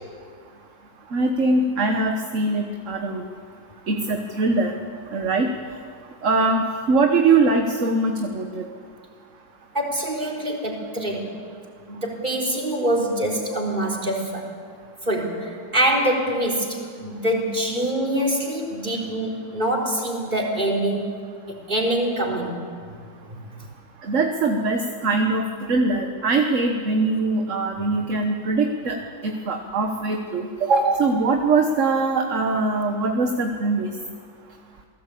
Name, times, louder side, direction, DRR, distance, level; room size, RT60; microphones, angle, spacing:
voice 1, 1.1-3.2 3.9-4.8 5.1-5.5 6.2-8.6 24.0-33.9, right 3 dB, 50° right, 4 dB, 1.6 m, -22 dB
voice 2, 9.7-11.4 11.9-14.5 15.0-21.0 21.5-22.6 23.3-23.5, right 1 dB, 25° right, 1 dB, 4.1 m, -25 dB
28.0 x 18.0 x 8.5 m, 2.1 s
omnidirectional pair, 1.8 m